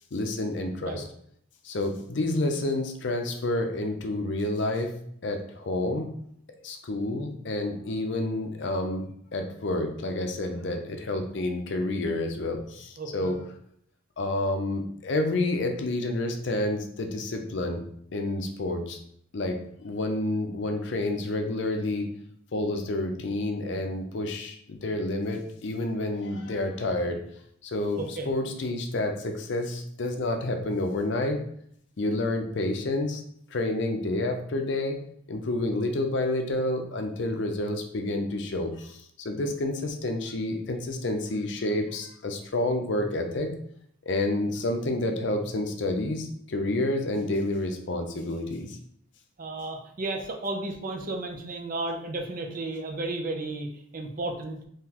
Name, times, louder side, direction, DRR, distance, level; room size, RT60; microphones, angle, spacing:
voice 1, 0.1-1.0 1.6-4.9 5.2-6.1 6.6-9.1 9.3-13.4 14.2-17.8 18.1-19.0 19.3-22.1 22.5-27.2 27.6-31.4 32.0-33.2 33.5-35.0 35.3-43.5 44.0-48.8, left 2 dB, 60° left, 4 dB, 0.5 m, -29 dB
voice 2, 13.0-13.3 28.0-28.3 49.4-54.6, right 2 dB, 45° right, 3 dB, 0.5 m, -33 dB
3.8 x 2.9 x 2.9 m, 0.68 s
head